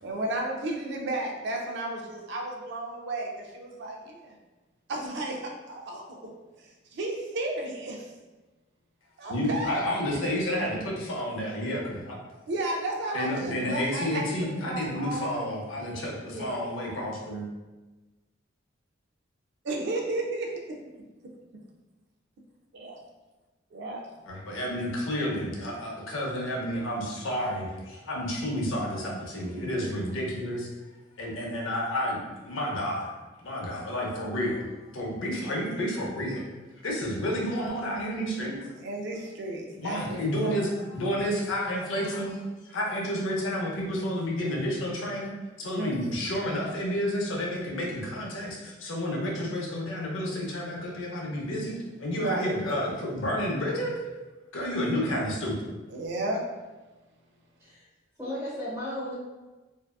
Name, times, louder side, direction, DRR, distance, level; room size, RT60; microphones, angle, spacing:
voice 1, 0.0-4.4 4.9-6.3 6.6-8.1 9.2-9.8 12.5-14.3 14.6-15.6 16.3-16.7 19.6-20.8 22.7-23.0 23.7-24.0 29.7-29.9 38.8-40.6 45.7-46.0 52.1-52.5 55.9-56.4, right 2 dB, 60° right, 1 dB, 0.4 m, -33 dB
voice 2, 9.3-12.2 13.1-17.5 24.3-30.7 31.2-33.1 33.4-34.6 34.9-36.4 36.8-38.7 39.7-54.0 54.5-55.7, equal, 85° left, -2 dB, 0.6 m, -30 dB
voice 3, 58.2-59.1, left 1 dB, 15° right, -9 dB, 0.9 m, -34 dB
2.6 x 2.3 x 2.2 m, 1.2 s
head